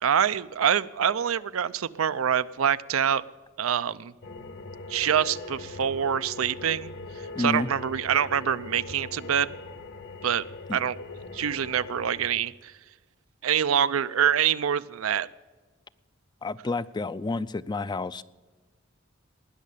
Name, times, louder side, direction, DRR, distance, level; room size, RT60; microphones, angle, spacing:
voice 1, 0.0-3.2 3.6-4.1 4.9-6.9 7.4-9.5 10.2-10.4 10.7-11.0 11.3-12.7 13.4-15.3, right 8 dB, 90° right, 15 dB, 0.5 m, -25 dB
sound 1, 4.2-12.3, left 3 dB, 60° left, 1.4 m, -41 dB
voice 2, 7.3-7.7 10.7-10.8 16.4-18.2, left 3 dB, 20° left, 16 dB, 0.4 m, -30 dB
19.5 x 6.5 x 8.4 m, 1.4 s
head